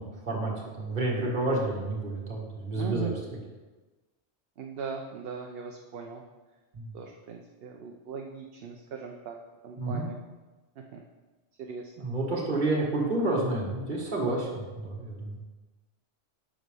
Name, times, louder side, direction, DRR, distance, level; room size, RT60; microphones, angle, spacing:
voice 1, 0.0-3.1 6.7-6.9 9.8-10.1 12.0-15.4, right 2 dB, 45° right, -3 dB, 1.8 m, -30 dB
voice 2, 2.7-3.2 4.6-6.2 6.9-9.3 9.6-10.2 10.8-11.0 11.6-12.1, right 6 dB, 60° right, 2 dB, 0.9 m, -39 dB
9.1 x 6.3 x 3.4 m, 1.2 s
omnidirectional pair, 1.2 m